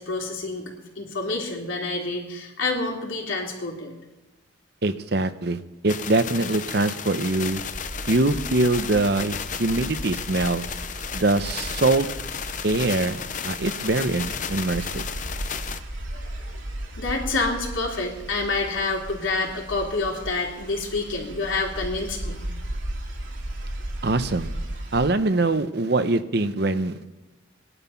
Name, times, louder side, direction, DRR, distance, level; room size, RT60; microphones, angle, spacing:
voice 1, 0.0-3.9 16.1-16.5 17.0-22.5, left 3 dB, 75° left, -1 dB, 3.2 m, -28 dB
voice 2, 4.8-5.6 5.8-7.6 8.1-10.6 11.1-12.1 12.6-15.1 24.0-24.5 24.9-27.1, right 2 dB, 55° right, 11 dB, 0.8 m, -23 dB
sound 1, 5.9-15.8, left 7 dB, 40° left, 0.6 m, -33 dB
sound 2, 7.5-25.1, right 1 dB, 80° right, 2.5 m, -36 dB
19.0 x 11.0 x 5.7 m, 1.1 s
head